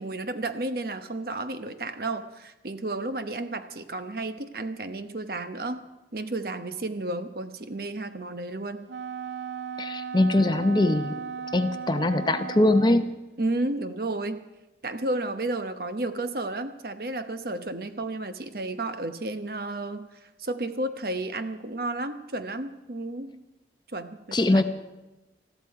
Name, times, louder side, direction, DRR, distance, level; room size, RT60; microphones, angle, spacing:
voice 1, 0.0-5.8 6.1-8.9 13.4-14.4 14.8-20.0 20.4-23.4 23.9-24.6, right 2 dB, 55° right, 9 dB, 0.9 m, -32 dB
Wind instrument woodwind instrument, 8.9-13.2, right 6 dB, 80° right, 0.5 m, -36 dB
voice 2, 9.8-11.1 11.5-13.1 24.3-24.6, left 2 dB, 25° left, 10 dB, 0.7 m, -22 dB
20.0 x 14.0 x 4.7 m, 1.0 s
head